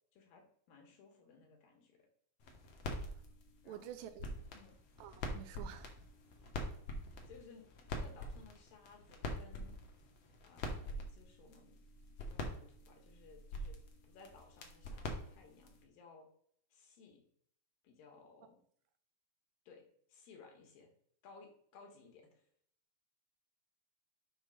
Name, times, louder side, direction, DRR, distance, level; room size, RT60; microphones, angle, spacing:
voice 1, 0.1-2.1 3.6-4.0 4.5-4.8 7.3-7.7 7.9-9.8 10.4-11.8 12.2-13.8 14.1-16.3 16.7-17.2 17.8-18.6 19.7-20.9 21.2-22.5, left 4 dB, 75° left, 2 dB, 3.2 m, -60 dB
sound 1, 2.4-15.8, left 1 dB, 60° left, 1.9 m, -45 dB
voice 2, 3.7-4.3 5.0-5.9, right 11 dB, 80° right, 10 dB, 2.2 m, -49 dB
8.1 x 4.0 x 5.4 m, 0.64 s
omnidirectional pair, 4.2 m